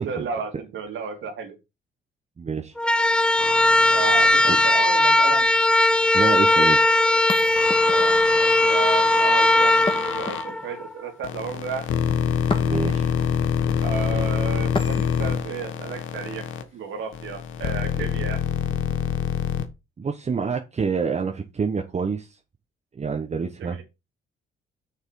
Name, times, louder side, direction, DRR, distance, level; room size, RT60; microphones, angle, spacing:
voice 1, 0.0-1.6 3.9-5.5 7.9-12.0 13.8-16.5 16.7-18.4 23.6-23.8, right 5 dB, 75° right, 2.9 m, -33 dB
voice 2, 2.4-2.7 4.5-4.6 6.1-6.8 12.6-13.1 20.0-22.3 22.9-23.8, right 5 dB, 35° right, 1.2 m, -27 dB
sound 1, 2.8-10.9, left 1 dB, 5° left, 0.4 m, -19 dB
sound 2, 3.4-4.7 7.5-10.5 11.2-16.6 17.1-19.7, left 8 dB, 80° left, 1.3 m, -27 dB
sound 3, 7.3-8.2 9.9-10.8 12.5-13.1 14.7-15.4, left 3 dB, 25° left, 1.6 m, -32 dB
6.7 x 6.5 x 4.8 m
cardioid pair, 90°, 20 cm